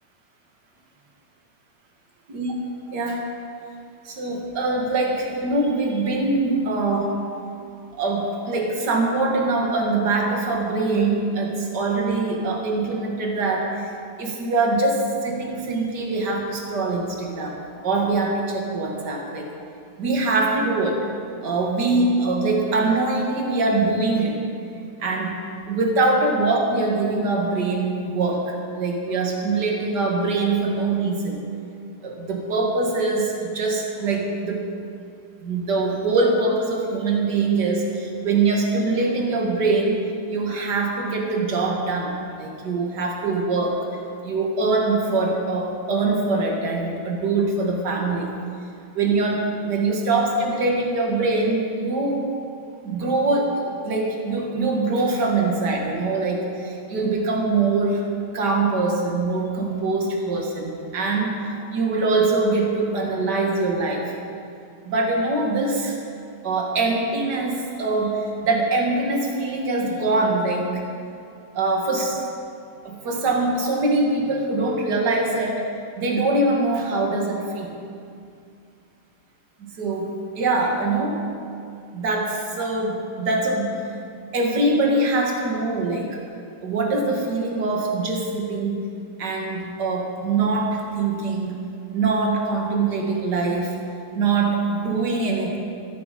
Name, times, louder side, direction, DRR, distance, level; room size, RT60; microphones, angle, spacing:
voice 1, 2.9-3.3 4.0-7.1 8.0-13.9 14.2-17.6 17.8-19.5 20.0-21.1 21.4-24.4 25.0-25.4 25.7-31.4 32.0-34.6 35.4-40.0 40.3-43.9 44.2-48.3 48.9-52.3 52.8-58.1 58.3-64.1 64.8-66.0 66.4-70.8 71.5-72.2 72.8-75.7 76.0-77.7 79.7-81.3 81.9-83.8 84.3-86.2 86.6-88.8 89.2-91.5 91.9-93.7 94.1-95.6, right 3 dB, 50° right, 0 dB, 1.3 m, -23 dB
14.5 x 13.5 x 5.2 m, 2.5 s
omnidirectional pair, 4.5 m